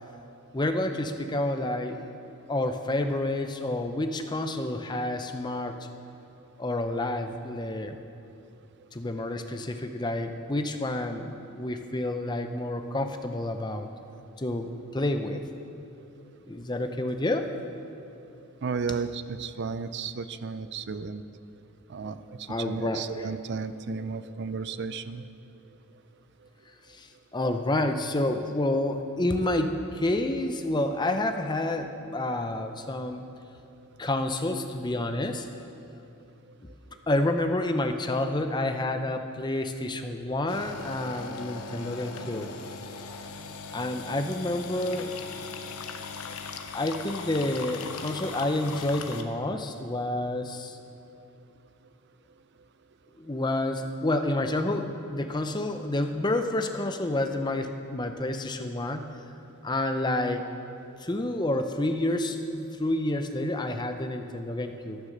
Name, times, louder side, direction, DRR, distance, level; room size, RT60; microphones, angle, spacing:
voice 1, 0.5-2.0 2.2-5.8 6.6-8.0 8.9-13.9 14.4-15.4 16.5-17.5 22.5-23.2 26.9-33.2 34.0-35.5 37.1-42.5 43.7-45.4 46.3-46.4 46.7-50.8 53.2-59.0 59.6-60.5 61.0-65.0, left 1 dB, 20° left, 6 dB, 0.6 m, -29 dB
voice 2, 18.6-21.2 21.9-25.2, right 5 dB, 50° right, 12 dB, 0.4 m, -33 dB
sound 1, 40.5-49.2, left 4 dB, 75° left, 0.9 m, -39 dB
13.5 x 9.5 x 6.6 m, 2.7 s
head